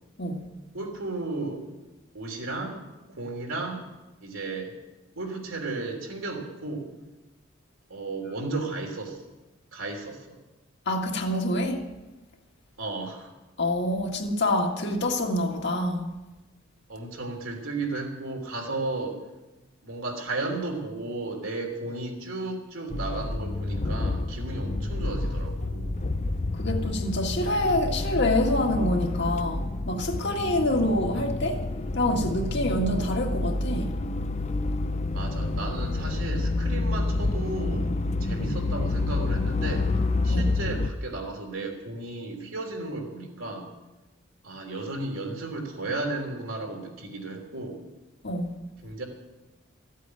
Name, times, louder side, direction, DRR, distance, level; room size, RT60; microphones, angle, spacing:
voice 1, 0.7-1.6 2.1-2.8 3.2-3.9 4.2-4.7 5.1-6.9 7.9-9.2 9.7-10.4 12.8-13.3 16.9-19.2 19.8-26.0 35.1-37.9 38.2-39.9 40.2-43.7 44.4-47.8 48.8-49.0, right 2 dB, 80° right, 3.3 m, -34 dB
voice 2, 10.9-11.8 13.6-16.1 26.6-31.6 32.0-33.9 40.3-40.5 48.2-48.6, left 1 dB, 55° left, 1.9 m, -26 dB
sound 1, 22.9-40.9, left 2 dB, 35° left, 0.5 m, -28 dB
14.5 x 8.4 x 9.3 m
head